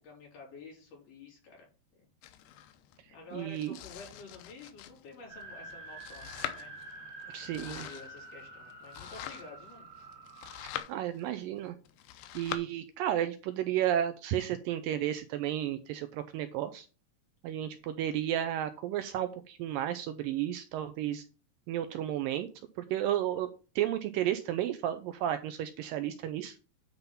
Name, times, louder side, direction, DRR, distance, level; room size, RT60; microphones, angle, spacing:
voice 1, 0.0-1.7 2.0-2.1 3.1-6.7 7.4-9.9, left 4 dB, 70° left, -2 dB, 5.5 m, -50 dB
Domestic sounds home sounds, 2.2-12.6, left 12 dB, 90° left, 2.7 m, -45 dB
voice 2, 3.3-3.8 7.3-7.9 10.9-11.8 12.4-16.9 17.4-21.2 21.7-22.5 22.9-23.5 23.8-26.5, right 11 dB, 85° right, 10 dB, 2.1 m, -32 dB
sound 1, 5.3-10.8, right 2 dB, 35° right, 2.9 m, -48 dB
9.8 x 4.1 x 5.5 m, 0.33 s
omnidirectional pair, 4.5 m